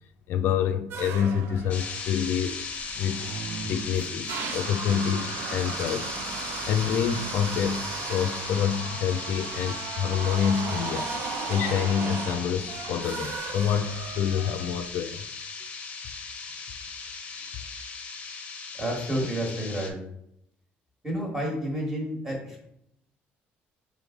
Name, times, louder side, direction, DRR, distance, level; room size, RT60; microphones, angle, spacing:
voice 1, 0.3-2.6 3.0-3.3 3.6-6.1 6.7-11.1 11.5-15.2, left 8 dB, 60° left, 0.3 m, -27 dB
sound 1, 0.9-14.9, right 6 dB, 70° right, 0.5 m, -36 dB
sound 2, 1.7-19.9, left 5 dB, 35° left, 0.8 m, -37 dB
voice 2, 18.8-20.0 21.0-22.7, equal, 10° right, 1.4 m, -30 dB
3.8 x 3.4 x 3.6 m
cardioid pair, 130°, 4 cm